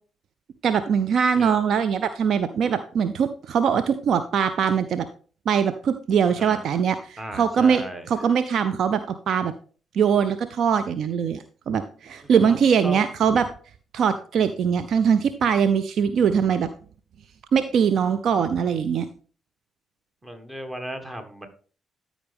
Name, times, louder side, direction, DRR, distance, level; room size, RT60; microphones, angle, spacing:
voice 1, 0.6-5.1 5.5-9.5 9.9-13.5 13.9-16.7 17.5-19.1, right 7 dB, 55° right, 12 dB, 0.4 m, -22 dB
voice 2, 6.3-6.8 7.2-8.1 12.1-13.1 20.2-21.5, right 1 dB, 20° right, 7 dB, 1.6 m, -36 dB
12.5 x 5.0 x 3.4 m, 0.41 s
figure-of-eight pair, 45°, 0 cm